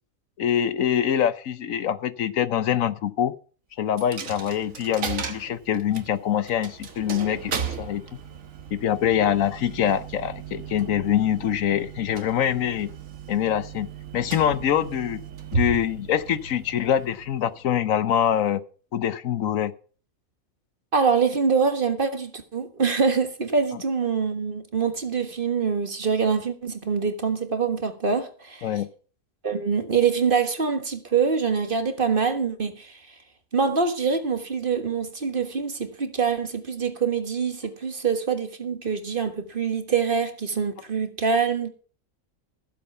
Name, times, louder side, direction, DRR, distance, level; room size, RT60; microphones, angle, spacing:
voice 1, 0.4-3.3 3.8-8.0 8.7-12.9 13.3-13.9 14.1-15.2 15.5-18.6 18.9-19.7 23.7-23.8 28.6-28.9, left 10 dB, 75° left, 1.2 m, -24 dB
Coin (dropping), 4.0-17.7, right 5 dB, 75° right, 1.8 m, -36 dB
voice 2, 20.9-28.7 29.4-33.0 33.5-41.7, right 5 dB, 40° right, 1.6 m, -25 dB
15.0 x 7.7 x 5.6 m
omnidirectional pair, 1.4 m